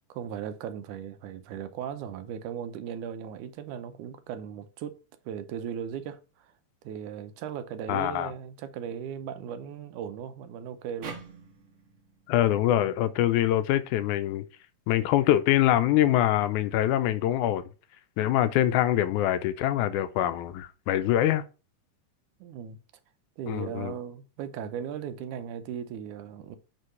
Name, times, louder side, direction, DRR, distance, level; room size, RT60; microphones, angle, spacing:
voice 1, 0.1-6.5 6.8-11.2 22.4-22.8 23.4-26.6, right 8 dB, 85° right, 2.3 m, -37 dB
voice 2, 7.9-8.3 12.3-14.5 14.9-17.6 18.2-21.5 23.5-23.9, left 13 dB, 90° left, 2.1 m, -24 dB
sound 1, 11.0-14.2, right 5 dB, 50° right, 1.9 m, -47 dB
8.1 x 3.8 x 5.5 m
omnidirectional pair, 3.4 m